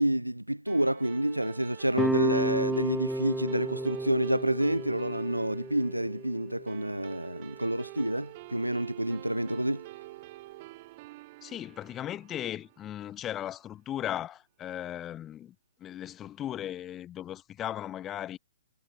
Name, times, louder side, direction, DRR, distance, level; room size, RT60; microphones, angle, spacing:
voice 1, 0.0-9.8, right 1 dB, 90° right, 0.6 m, -29 dB
sound 1, 0.7-13.4, right 20 dB, 35° right, 1.0 m, -48 dB
sound 2, 1.9-7.1, right 1 dB, ahead, 0.6 m, -32 dB
voice 2, 11.4-18.4, left 11 dB, 20° left, 1.1 m, -37 dB
figure-of-eight pair, 125°, 0 cm